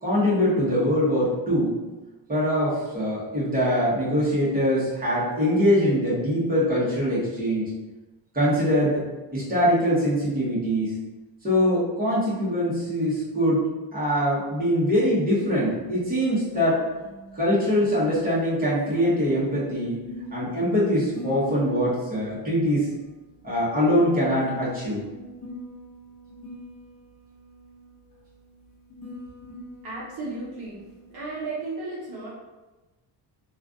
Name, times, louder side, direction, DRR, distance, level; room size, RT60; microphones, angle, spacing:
voice 1, 0.0-1.7 2.3-7.7 8.3-9.0 9.3-10.9 11.4-13.6 13.9-16.8 17.4-20.0 20.3-22.9 23.4-25.0, equal, 20° right, -8 dB, 1.2 m, -23 dB
sound 1, 15.4-31.5, left 2 dB, 35° left, 1.3 m, -44 dB
voice 2, 29.8-30.8 31.1-32.3, right 3 dB, 55° right, -7 dB, 0.9 m, -34 dB
3.1 x 2.5 x 2.5 m, 1.1 s
cardioid pair, 125°, 45 cm